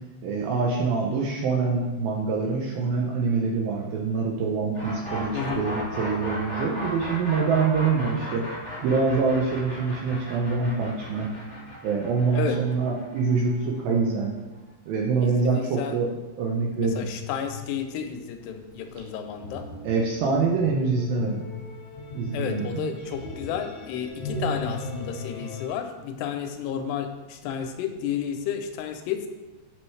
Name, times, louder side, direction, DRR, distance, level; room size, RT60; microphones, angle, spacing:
voice 1, 0.2-8.4 8.8-11.3 11.8-14.4 14.9-16.1 16.4-17.1 19.8-21.4 22.1-23.0, right 4 dB, 75° right, -1 dB, 2.2 m, -25 dB
sound 1, 4.7-14.6, equal, 10° right, 0.6 m, -36 dB
voice 2, 5.3-5.7 12.3-12.6 15.2-16.0 17.0-19.7 22.3-29.3, left 8 dB, 85° left, 6 dB, 2.7 m, -32 dB
sound 2, 16.7-25.7, left 2 dB, 50° left, 2.0 m, -37 dB
7.9 x 6.1 x 3.2 m, 1.2 s
omnidirectional pair, 4.8 m